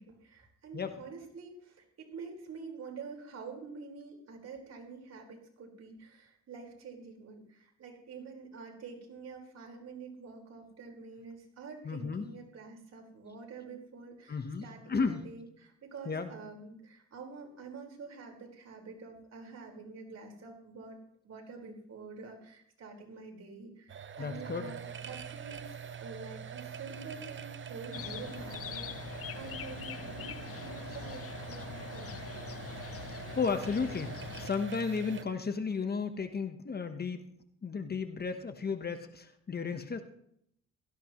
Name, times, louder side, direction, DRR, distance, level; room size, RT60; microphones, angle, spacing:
voice 1, 0.0-21.0 21.2-32.1, right 4 dB, 55° right, 1 dB, 4.8 m, -47 dB
voice 2, 11.8-12.3 14.3-15.2 16.1-16.3 24.2-24.7 33.4-37.2 37.6-40.0, left 5 dB, 30° left, 8 dB, 1.1 m, -34 dB
sound 1, 23.9-35.2, right 7 dB, 40° right, 0.9 m, -44 dB
sound 2, 27.9-34.5, left 10 dB, 50° left, 0.6 m, -43 dB
17.0 x 14.0 x 3.1 m, 0.71 s
cardioid pair, 90°, 30 cm